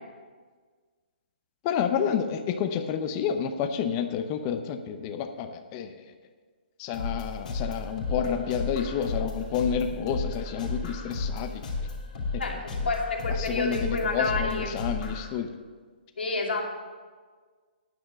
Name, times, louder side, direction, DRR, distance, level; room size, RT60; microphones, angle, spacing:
voice 1, 1.6-5.9 6.8-11.6 12.3-12.6 13.4-15.5, left 8 dB, 25° left, 7 dB, 0.7 m, -30 dB
sound 1, 6.9-15.3, left 3 dB, 50° left, 3.0 m, -33 dB
voice 2, 12.4-14.7 16.2-16.7, left 3 dB, 85° left, 1 dB, 2.5 m, -29 dB
9.3 x 8.1 x 7.2 m, 1.5 s
hypercardioid pair, 165°, 6 cm